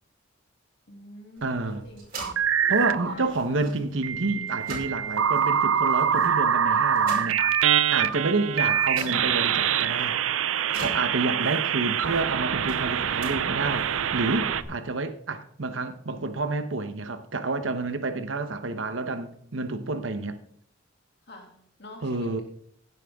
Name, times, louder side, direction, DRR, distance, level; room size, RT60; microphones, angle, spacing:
voice 1, 0.9-2.0 3.0-3.3 11.0-11.2 21.3-22.4, left 1 dB, 55° left, 2.7 m, -44 dB
sound 1, 1.4-14.6, right 2 dB, 45° right, 5.3 m, -45 dB
voice 2, 1.4-1.8 2.7-7.4 7.9-10.2 10.7-20.4 22.0-22.4, right 3 dB, 70° right, 1.0 m, -29 dB
sound 2, 2.2-3.1 4.0-14.6, right 8 dB, 90° right, 0.6 m, -25 dB
16.5 x 9.1 x 3.7 m
head